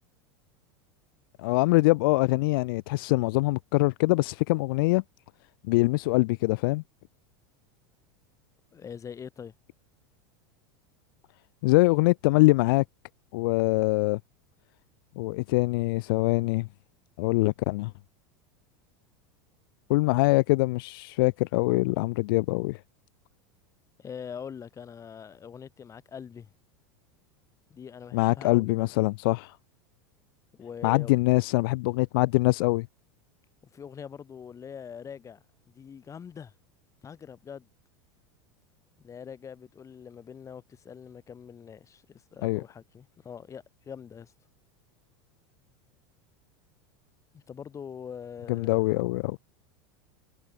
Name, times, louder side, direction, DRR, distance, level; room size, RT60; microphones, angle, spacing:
voice 1, 1.4-5.0 5.7-6.8 11.6-12.8 13.3-14.2 15.2-16.7 17.2-17.9 19.9-22.8 28.1-29.5 30.8-32.9 42.4-42.6 48.5-49.4, left 23 dB, 70° left, 1.4 m, -23 dB
voice 2, 8.7-9.5 24.0-26.5 27.7-28.9 30.6-31.2 33.7-36.5 37.0-37.7 39.0-44.3 47.3-48.8, left 7 dB, 25° left, 6.8 m, -43 dB
supercardioid pair, 120°, 12 cm